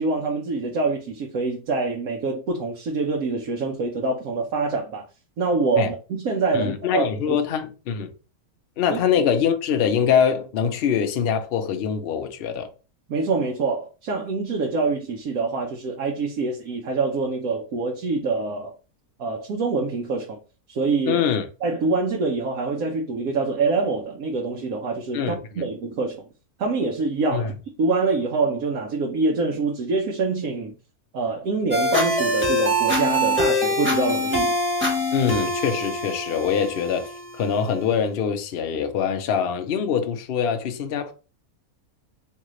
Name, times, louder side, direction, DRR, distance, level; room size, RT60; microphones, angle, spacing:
voice 1, 0.0-5.0 5.4-7.4 8.9-9.0 13.1-18.7 19.2-20.4 20.7-21.2 21.6-26.2 26.6-27.5 27.8-30.7 31.1-34.5, right 3 dB, 70° right, 1.2 m, -25 dB
voice 2, 6.5-8.1 8.8-12.7 21.1-21.4 25.1-25.6 27.3-27.5 35.1-41.1, left 7 dB, 60° left, 0.6 m, -24 dB
sound 1, 31.7-37.7, equal, 10° right, 1.0 m, -24 dB
3.7 x 3.2 x 3.1 m
omnidirectional pair, 1.6 m